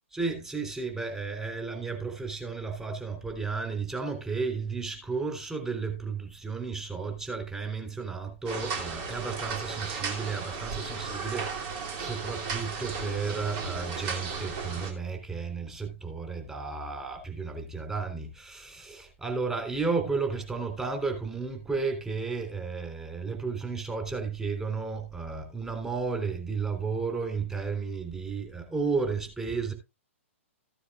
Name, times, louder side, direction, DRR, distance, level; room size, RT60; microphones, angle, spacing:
voice 1, 0.1-29.7, right 4 dB, 10° right, 3.6 m, -33 dB
sound 1, 8.5-14.9, right 5 dB, 40° right, 2.7 m, -35 dB
14.5 x 10.0 x 2.4 m
figure-of-eight pair, 120°, 7 cm